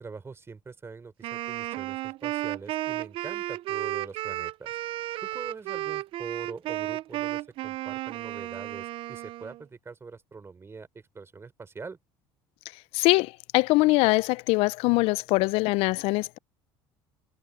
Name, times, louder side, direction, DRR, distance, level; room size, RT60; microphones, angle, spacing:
voice 1, 0.0-4.8 5.2-12.0, right 4 dB, 25° right, 5.5 m, -43 dB
Wind instrument woodwind instrument, 1.2-9.6, right 16 dB, 60° right, 0.5 m, -33 dB
voice 2, 12.9-16.4, left 23 dB, 75° left, 0.4 m, -23 dB
supercardioid pair, 100°, 10 cm